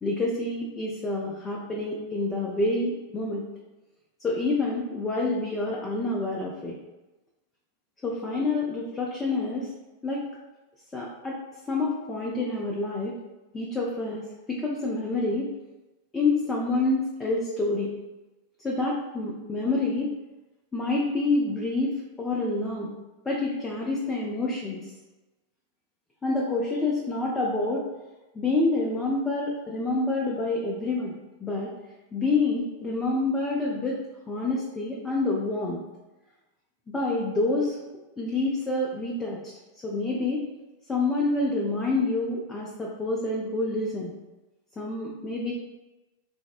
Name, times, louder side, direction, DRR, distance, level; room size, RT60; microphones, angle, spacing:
voice 1, 0.0-3.4 4.2-6.8 8.0-9.7 10.0-10.2 10.9-11.4 11.7-13.2 13.5-14.2 14.5-15.5 16.1-17.9 18.6-20.1 20.7-21.9 22.2-22.9 23.3-24.9 26.2-27.8 28.3-31.1 31.4-31.7 32.1-34.0 34.3-35.8 36.9-37.8 38.2-39.4 39.8-40.4 40.9-44.1 44.8-45.5, left 2 dB, 15° left, -3 dB, 0.4 m, -27 dB
3.3 x 2.0 x 2.4 m, 1.1 s
figure-of-eight pair, 90°, 0 cm